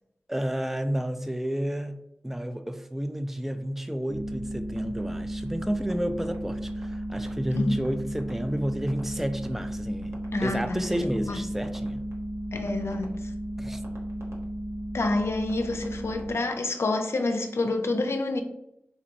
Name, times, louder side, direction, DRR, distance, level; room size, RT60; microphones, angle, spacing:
voice 1, 0.3-2.0 2.2-12.0 13.6-13.8, equal, 5° right, 0.3 m, -30 dB
sound 1, 4.1-16.3, right 1 dB, 75° right, 0.8 m, -34 dB
voice 2, 10.3-11.4 12.5-13.1 14.9-18.4, left 2 dB, 75° left, 0.5 m, -28 dB
4.1 x 2.9 x 2.5 m
wide cardioid pair, 55°, 4 cm